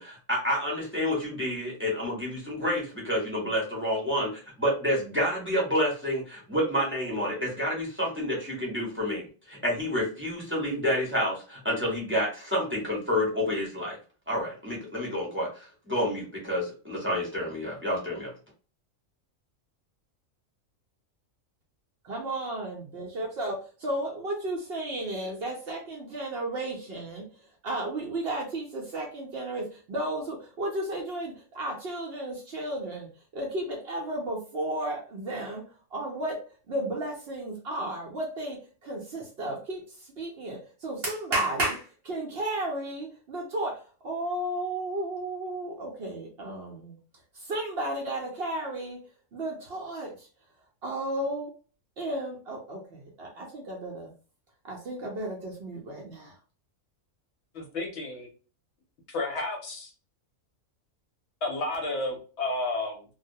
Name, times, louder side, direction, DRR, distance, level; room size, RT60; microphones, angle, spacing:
voice 1, 0.0-14.0 14.3-18.3, equal, 10° right, -4 dB, 0.7 m, -29 dB
voice 2, 22.0-35.6 35.9-36.4 36.7-47.0 47.3-49.0 49.3-50.3 50.8-51.5 52.0-54.1 54.6-56.4, right 1 dB, 60° right, -1 dB, 0.7 m, -33 dB
voice 3, 57.5-58.3 59.1-59.9 61.4-63.0, left 2 dB, 65° left, 1 dB, 0.9 m, -31 dB
2.3 x 2.1 x 2.6 m, 0.37 s
omnidirectional pair, 1.4 m